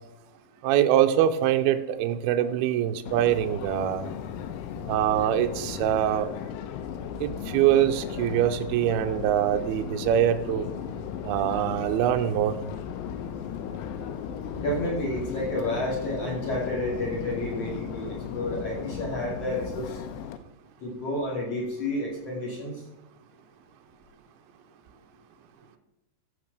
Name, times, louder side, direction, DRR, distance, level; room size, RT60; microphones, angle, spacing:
voice 1, 0.6-4.1 4.9-6.3 7.2-10.7 11.2-12.6, right 11 dB, 90° right, 7 dB, 2.2 m, -24 dB
Subway metro underground, 3.1-20.4, left 8 dB, 90° left, 3.2 m, -36 dB
voice 2, 14.6-20.0 20.8-22.9, left 1 dB, 40° left, -3 dB, 2.9 m, -30 dB
14.0 x 5.2 x 6.7 m, 0.93 s
omnidirectional pair, 5.3 m